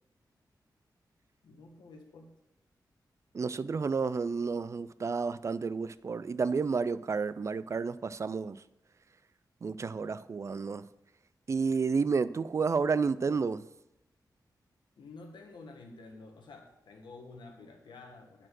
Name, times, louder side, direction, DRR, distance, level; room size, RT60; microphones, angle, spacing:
voice 1, 1.4-2.3 14.9-18.5, left 3 dB, 90° left, 2 dB, 1.5 m, -50 dB
voice 2, 3.3-8.6 9.6-10.8 11.5-13.6, right 5 dB, 40° right, 16 dB, 0.3 m, -31 dB
8.9 x 4.3 x 6.2 m, 0.91 s
wide cardioid pair, 95°, 8 cm